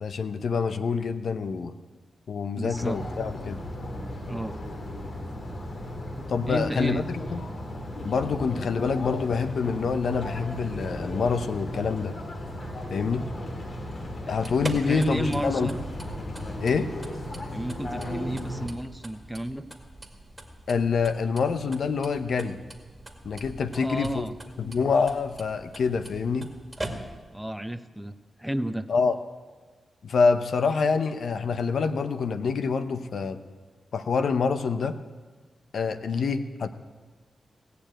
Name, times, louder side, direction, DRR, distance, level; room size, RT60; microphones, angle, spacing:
voice 1, 0.0-1.7 2.3-3.6 6.3-7.0 7.3-7.4 8.0-12.1 12.9-13.3 14.3-15.7 16.6-16.9 20.7-22.6 23.2-24.2 24.6-26.5 28.9-29.2 30.0-33.4 33.9-35.0 35.7-36.7, left 5 dB, 70° left, 10 dB, 0.7 m, -26 dB
voice 2, 2.6-3.0 4.3-4.6 6.5-7.0 14.2-14.3 14.8-15.8 17.5-19.7 23.7-24.3 27.3-28.9, equal, 5° right, 11 dB, 0.7 m, -32 dB
sound 1, 2.7-18.7, left 1 dB, 55° left, 2.8 m, -36 dB
sound 2, 14.3-27.4, right 1 dB, 20° right, 2.0 m, -42 dB
17.5 x 6.9 x 8.9 m, 1.4 s
cardioid pair, 60°, 0 cm